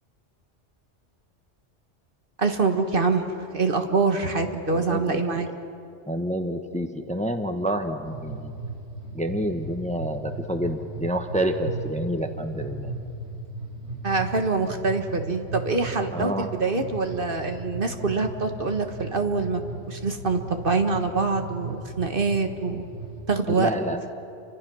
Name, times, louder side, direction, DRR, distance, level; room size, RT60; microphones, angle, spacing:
voice 1, 2.4-5.5 14.0-19.6 19.9-22.8 23.3-23.7, right 4 dB, 50° right, 5 dB, 1.6 m, -25 dB
voice 2, 4.7-5.5 6.1-8.5 9.1-12.9 16.1-16.5 23.6-24.0, equal, 5° left, 6 dB, 1.0 m, -28 dB
sound 1, 8.0-23.2, right 3 dB, 65° right, 7.6 m, -36 dB
29.5 x 25.5 x 6.2 m, 2.6 s
omnidirectional pair, 1.2 m